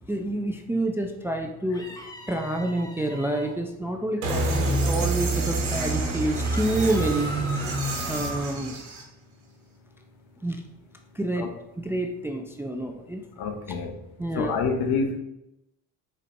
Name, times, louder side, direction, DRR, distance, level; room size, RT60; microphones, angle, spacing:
voice 1, 0.0-2.0 2.3-7.3 8.1-8.8 10.4-10.6 11.1-11.5 11.8-13.2 14.2-14.5, right 1 dB, 5° right, 4 dB, 0.3 m, -28 dB
sound 1, 1.7-3.5 6.4-8.5, right 1 dB, 10° left, 0.8 m, -39 dB
sound 2, 4.2-9.0, right 2 dB, 90° right, 1.2 m, -27 dB
voice 2, 13.4-14.0 14.4-15.2, left 5 dB, 70° left, 6 dB, 0.8 m, -27 dB
4.5 x 4.1 x 2.6 m, 0.87 s
supercardioid pair, 70°, 41 cm